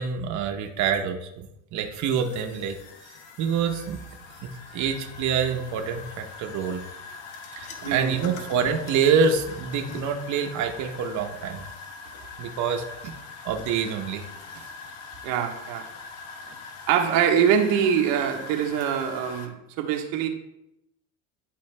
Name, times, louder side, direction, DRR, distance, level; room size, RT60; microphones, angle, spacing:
voice 1, 0.0-2.8 3.4-4.0 4.4-6.8 7.5-11.6 12.4-13.1 13.4-14.2 14.5-14.7, right 6 dB, 50° right, 0.8 m, -26 dB
sound 1, 1.9-19.5, left 4 dB, 55° left, 1.1 m, -42 dB
voice 2, 7.8-8.2 15.2-15.9 16.9-20.3, right 8 dB, 85° right, 1.0 m, -24 dB
10.5 x 3.9 x 3.2 m
cardioid pair, 125°, 37 cm